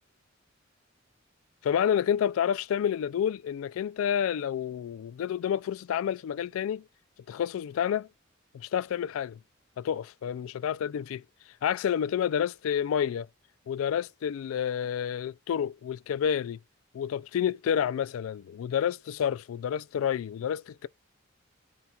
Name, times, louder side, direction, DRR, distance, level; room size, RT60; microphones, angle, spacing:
voice 1, 1.6-6.8 7.3-8.1 8.5-9.4 9.8-11.2 11.6-13.3 13.7-16.6 16.9-20.9, left 9 dB, 85° left, 0.3 m, -29 dB
3.9 x 2.3 x 4.3 m
head